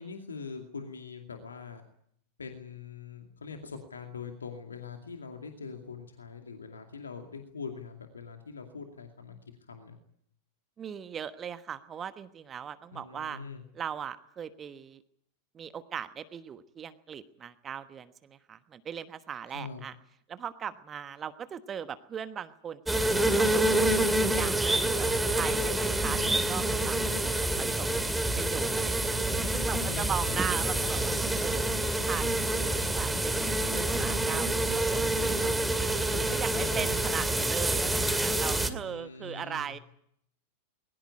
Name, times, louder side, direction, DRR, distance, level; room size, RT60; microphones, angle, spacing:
voice 1, 0.0-1.8 2.4-9.4 9.7-10.0 12.9-13.6 19.5-19.8 29.8-30.5 36.5-37.0 38.7-39.8, left 5 dB, 75° left, 4 dB, 2.4 m, -43 dB
voice 2, 10.8-13.4 13.7-15.0 15.5-19.9 20.3-23.6 24.1-25.1 25.3-29.2 29.5-31.7 32.0-35.5 36.3-39.8, right 8 dB, 25° right, 12 dB, 1.2 m, -39 dB
sound 1, 22.9-38.7, right 1 dB, 5° right, 2.3 m, -27 dB
21.5 x 19.5 x 9.8 m, 0.70 s
figure-of-eight pair, 90°, 0 cm